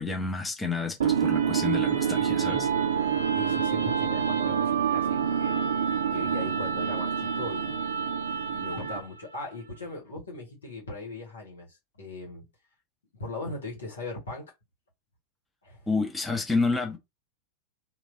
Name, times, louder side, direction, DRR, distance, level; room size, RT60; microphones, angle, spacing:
voice 1, 0.0-2.7 15.9-17.0, left 4 dB, 10° left, 0.8 m, -29 dB
sound 1, 1.0-9.2, right 7 dB, 65° right, 0.4 m, -27 dB
voice 2, 3.3-5.6 6.1-7.8 8.5-12.4 13.2-14.5 15.6-15.9, left 2 dB, 70° left, 1.6 m, -39 dB
3.1 x 2.6 x 2.7 m
figure-of-eight pair, 90°, 0 cm